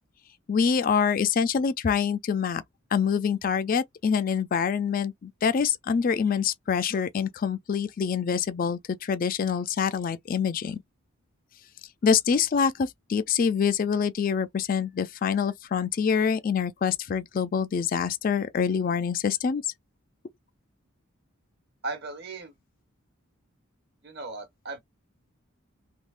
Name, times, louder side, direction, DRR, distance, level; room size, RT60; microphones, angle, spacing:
voice 1, 0.5-2.6 2.9-10.8 12.0-19.6, left 6 dB, 45° left, 0.4 m, -25 dB
voice 2, 21.8-22.5 24.0-24.8, right 3 dB, 55° right, 1.1 m, -36 dB
3.6 x 2.7 x 2.4 m
head